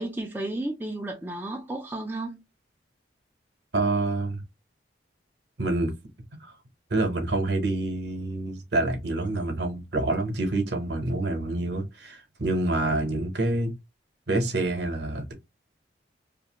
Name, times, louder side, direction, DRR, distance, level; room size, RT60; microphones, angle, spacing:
voice 1, 0.0-2.4, right 2 dB, 10° right, 0.4 m, -33 dB
voice 2, 3.7-4.4 5.6-5.9 6.4-6.5 6.9-13.7 14.3-15.3, right 2 dB, 60° right, 0.9 m, -27 dB
2.6 x 2.4 x 2.8 m
head